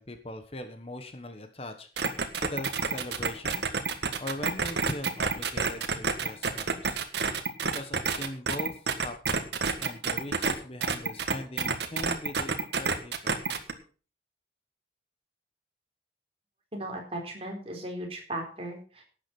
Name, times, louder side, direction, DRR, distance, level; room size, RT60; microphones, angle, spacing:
voice 1, 0.0-3.7 4.2-7.0 7.6-13.4, left 1 dB, 35° left, 8 dB, 1.3 m, -40 dB
sound 1, 2.0-10.5 10.8-13.7, right 5 dB, 75° right, 1.6 m, -28 dB
voice 2, 16.7-19.0, right 1 dB, 30° right, 1 dB, 4.0 m, -37 dB
12.0 x 8.8 x 6.0 m, 0.38 s
head